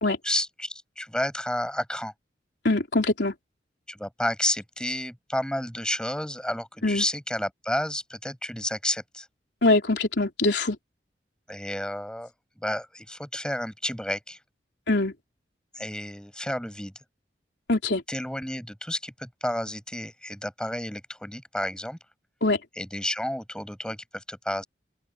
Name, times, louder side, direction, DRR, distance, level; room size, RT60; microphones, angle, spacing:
voice 1, 0.2-2.1 3.9-9.3 11.5-14.4 15.7-16.9 18.1-22.0 22.8-24.6, left 1 dB, 5° left, 8.0 m, -31 dB
voice 2, 2.6-3.3 6.8-7.0 9.6-10.8 14.9-15.1 17.7-18.0 22.4-22.6, left 2 dB, 75° left, 3.7 m, -23 dB
head